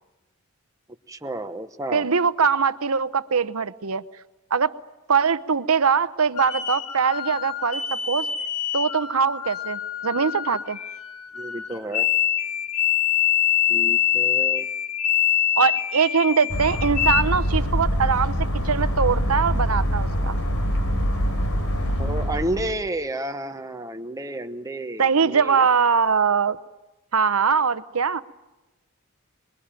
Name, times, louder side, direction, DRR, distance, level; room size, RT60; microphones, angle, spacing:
voice 1, 1.1-2.1 11.3-12.1 13.7-14.7 22.0-25.6, right 1 dB, 15° right, 6 dB, 1.1 m, -31 dB
voice 2, 1.9-4.0 4.5-4.8 5.1-8.3 8.7-10.8 15.6-20.4 25.0-26.6 27.1-28.2, right 6 dB, 70° right, 13 dB, 0.9 m, -22 dB
sound 1, 6.4-17.2, left 10 dB, 85° left, 2.2 m, -25 dB
sound 2, 16.5-22.7, equal, 70° left, 3.9 m, -24 dB
26.5 x 22.0 x 9.0 m, 1.1 s
head